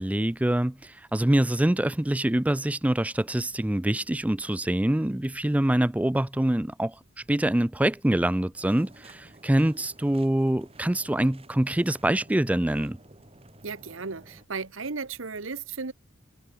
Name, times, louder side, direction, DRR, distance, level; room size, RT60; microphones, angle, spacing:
voice 1, 0.0-7.0 7.3-13.0, right 1 dB, 5° right, 0.4 m, -25 dB
sound 1, 8.6-14.4, right 1 dB, 30° right, 3.7 m, -53 dB
voice 2, 13.6-15.9, right 4 dB, 80° right, 1.2 m, -35 dB
head